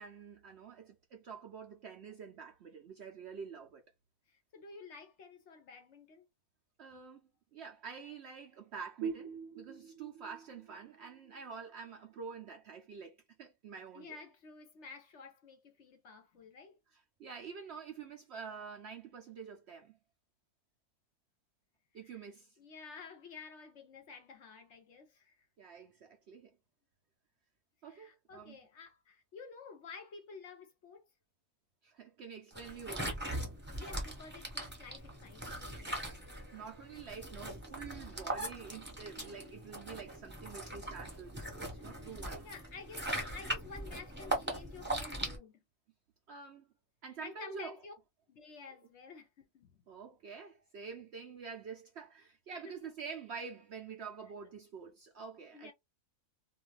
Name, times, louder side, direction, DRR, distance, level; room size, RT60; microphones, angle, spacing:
voice 1, 0.0-3.8 6.8-14.2 16.9-20.0 21.9-22.6 25.6-26.6 27.8-28.6 31.8-33.6 36.5-42.5 46.3-46.7 47.0-47.7 49.9-55.7, right 6 dB, 65° right, 0.7 m, -47 dB
voice 2, 4.3-6.3 13.9-16.8 22.0-25.5 27.8-31.0 33.7-36.0 39.2-39.3 41.8-42.2 42.4-45.6 47.2-47.9 48.3-49.3 49.5-49.8 52.6-52.7 55.5-55.7, left 5 dB, 60° left, 0.9 m, -51 dB
sound 1, 9.0-12.4, right 6 dB, 85° right, 1.1 m, -44 dB
sound 2, 32.5-45.4, right 1 dB, 10° right, 0.7 m, -40 dB
2.6 x 2.3 x 3.2 m
omnidirectional pair, 1.6 m